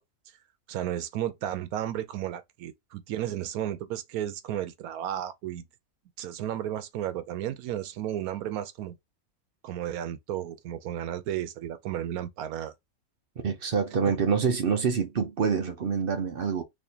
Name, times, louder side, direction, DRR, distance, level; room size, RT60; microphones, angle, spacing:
voice 1, 0.7-5.6 6.2-9.0 9.6-12.7 14.1-14.2, right 11 dB, 80° right, 1.1 m, -33 dB
voice 2, 13.4-16.6, right 6 dB, 55° right, 0.6 m, -26 dB
4.1 x 2.8 x 2.7 m
omnidirectional pair, 1.5 m